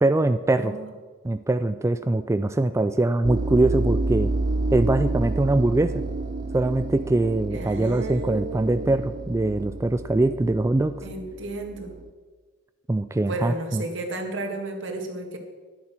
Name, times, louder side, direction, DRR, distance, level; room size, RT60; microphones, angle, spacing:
voice 1, 0.0-0.7 1.2-4.3 4.7-5.9 6.5-11.0 12.9-13.8, right 2 dB, 15° right, 10 dB, 0.3 m, -22 dB
voice 2, 0.6-0.9 7.5-9.0 11.0-11.9 13.3-15.4, right 2 dB, 70° right, 3 dB, 2.0 m, -33 dB
sound 1, 3.2-11.9, right 2 dB, 45° right, 0.7 m, -29 dB
12.0 x 10.5 x 6.1 m, 1.4 s
head